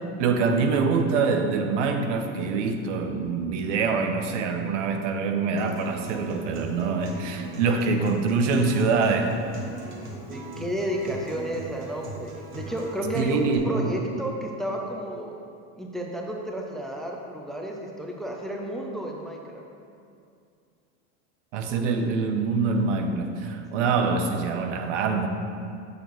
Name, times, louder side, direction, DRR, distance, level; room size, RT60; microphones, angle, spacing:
voice 1, 0.2-9.4 13.1-13.9 21.5-25.3, right 4 dB, 85° right, 6 dB, 0.8 m, -25 dB
Acoustic guitar, 5.6-13.6, right 1 dB, 35° right, 1.4 m, -39 dB
voice 2, 10.3-15.4 15.8-19.6 23.8-23.9, right 1 dB, ahead, 0 dB, 0.3 m, -32 dB
6.9 x 6.7 x 3.1 m, 2.4 s
supercardioid pair, 140°, 36 cm